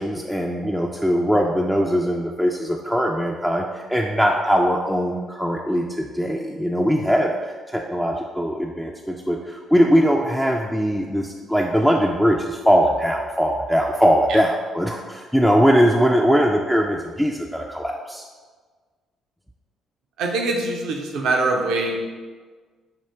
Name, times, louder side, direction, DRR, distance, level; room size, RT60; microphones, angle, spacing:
voice 1, 0.0-18.2, equal, 5° left, -1 dB, 0.4 m, -21 dB
voice 2, 20.2-22.0, right 2 dB, 60° right, 1 dB, 0.5 m, -23 dB
5.7 x 2.4 x 3.3 m, 1.4 s
figure-of-eight pair, 45°, 0 cm